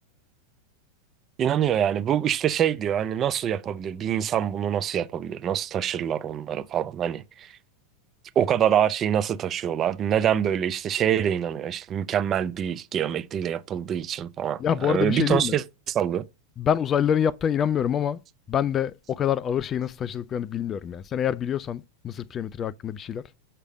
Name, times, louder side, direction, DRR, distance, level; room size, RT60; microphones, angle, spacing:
voice 1, 1.4-7.5 8.4-16.2, right 9 dB, 30° right, 0.6 m, -25 dB
voice 2, 14.6-15.6 16.6-18.2 18.5-23.2, left 9 dB, 25° left, 0.3 m, -26 dB
7.3 x 3.3 x 6.0 m
figure-of-eight pair, 90°, 0 cm